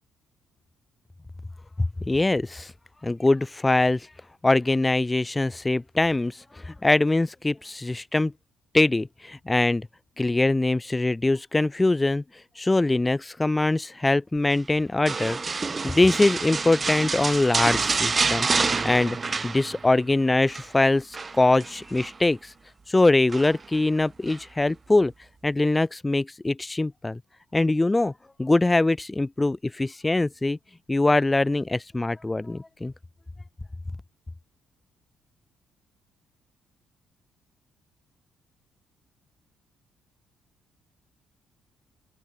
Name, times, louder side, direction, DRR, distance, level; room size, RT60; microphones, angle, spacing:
voice 1, 1.8-2.7 3.0-4.0 4.4-6.3 6.7-8.3 8.7-9.9 10.2-12.2 12.6-19.2 19.4-22.5 22.9-25.1 25.4-27.2 27.5-28.1 28.4-30.6 30.9-32.9, left 2 dB, 15° left, 5.4 m, -23 dB
sound 1, 15.1-20.1 20.3-20.7 21.1-22.2 23.3-23.8 24.3-24.4, right 4 dB, 30° right, 1.3 m, -28 dB
open air
cardioid pair, 90°, 0 cm